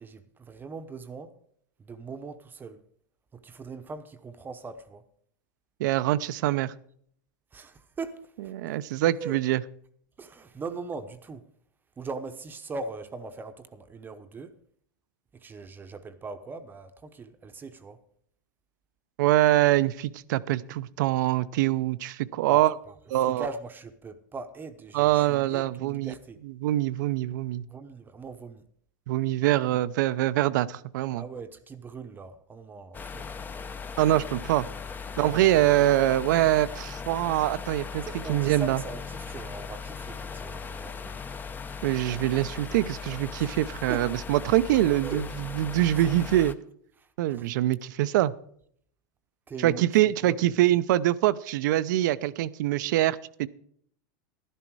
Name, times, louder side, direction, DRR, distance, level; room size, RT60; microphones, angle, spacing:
voice 1, 0.0-1.3 1.8-2.8 3.3-5.0 7.5-8.8 9.2-9.4 10.2-11.5 12.0-14.5 15.4-18.0 22.5-22.9 23.2-26.4 27.7-28.6 31.2-33.3 35.1-35.6 38.0-41.1 43.3-43.6 43.9-44.1 45.0-45.2 45.9-46.0 47.0-47.5 49.5-49.8 50.2-50.6, right 4 dB, 20° right, 0.8 m, -40 dB
voice 2, 5.8-6.7 8.5-9.6 19.2-22.7 23.1-23.4 24.9-26.1 26.6-27.6 29.1-31.2 34.0-34.7 35.2-38.0 38.3-38.8 41.8-46.6 47.2-48.3 49.6-53.5, right 14 dB, 70° right, 0.6 m, -24 dB
sound 1, 32.9-46.5, left 5 dB, 20° left, 0.7 m, -38 dB
12.0 x 11.0 x 4.7 m
supercardioid pair, 125°, 10 cm